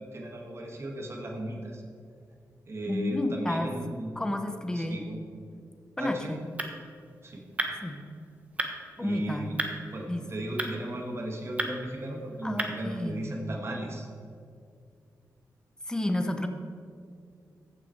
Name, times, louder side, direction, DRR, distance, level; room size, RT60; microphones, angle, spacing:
voice 1, 0.0-1.8 2.7-4.2 4.7-5.2 6.0-6.4 7.2-7.4 9.0-9.6 9.9-14.1, right 1 dB, 40° right, 1 dB, 1.8 m, -36 dB
voice 2, 2.9-3.7 4.2-5.0 6.0-6.4 7.8-8.0 9.0-9.6 10.1-10.2 12.4-13.4 15.9-16.5, left 1 dB, 10° left, 6 dB, 1.0 m, -31 dB
sound 1, 6.0-13.3, right 1 dB, 20° right, 1.2 m, -38 dB
14.5 x 6.0 x 4.6 m, 2.3 s
cardioid pair, 90°, 7 cm